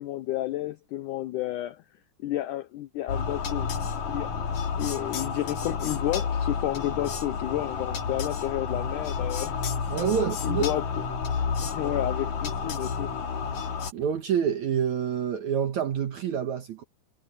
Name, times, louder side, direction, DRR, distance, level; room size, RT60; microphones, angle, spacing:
voice 1, 0.0-1.8 2.2-3.7 4.1-4.4 4.8-9.6 10.1-11.0 11.6-13.2, left 14 dB, 85° left, 1.8 m, -31 dB
sound 1, 3.1-13.9, left 6 dB, 55° left, 3.3 m, -30 dB
voice 2, 9.9-10.6 13.9-16.8, right 8 dB, 60° right, 2.3 m, -27 dB
omnidirectional pair, 4.4 m